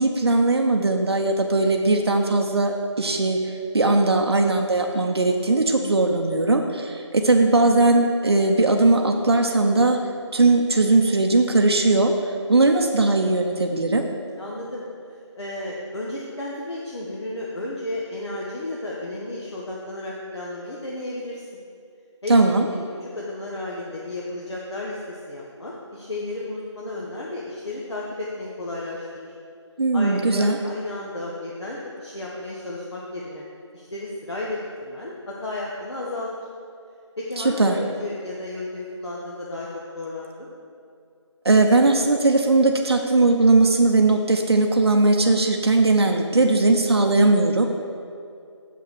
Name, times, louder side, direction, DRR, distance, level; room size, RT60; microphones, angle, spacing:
voice 1, 0.0-10.0 10.3-14.0 22.3-22.6 29.8-30.6 37.4-37.8 41.4-47.7, right 2 dB, 55° right, 2 dB, 0.7 m, -19 dB
voice 2, 14.4-14.8 15.4-21.6 22.2-22.4 22.7-29.3 29.9-33.5 33.7-36.5 37.2-39.7 39.9-40.5, left 2 dB, 60° left, -5 dB, 1.3 m, -33 dB
7.1 x 5.8 x 6.4 m, 2.4 s
figure-of-eight pair, 175°, 16 cm